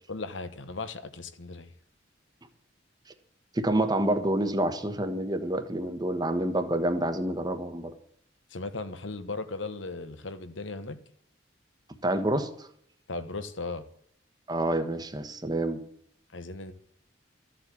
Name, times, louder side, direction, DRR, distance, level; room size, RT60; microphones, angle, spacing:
voice 1, 0.1-1.7 8.5-11.0 13.1-13.8 16.3-16.7, left 3 dB, 85° left, 1.3 m, -37 dB
voice 2, 3.5-7.9 12.0-12.7 14.5-15.8, right 1 dB, 20° right, 1.2 m, -28 dB
13.5 x 7.7 x 8.4 m
head